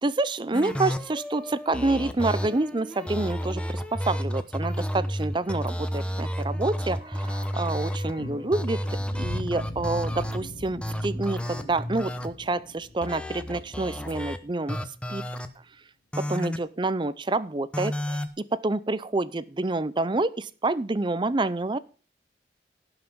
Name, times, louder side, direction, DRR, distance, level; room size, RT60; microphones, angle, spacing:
voice 1, 0.0-8.8 9.2-14.8 15.1-15.2 16.2-18.2 18.5-21.8, right 2 dB, 25° right, 17 dB, 0.5 m, -28 dB
sound 1, 0.5-8.1 8.5-10.4 10.8-12.3 13.0-14.4 14.7-15.5 16.1-16.6 17.7-18.3, equal, 5° left, 0.8 m, -31 dB
sound 2, 6.6-14.6 14.9-15.0, left 2 dB, 55° left, 2.1 m, -42 dB
17.5 x 5.8 x 5.1 m, 0.38 s
head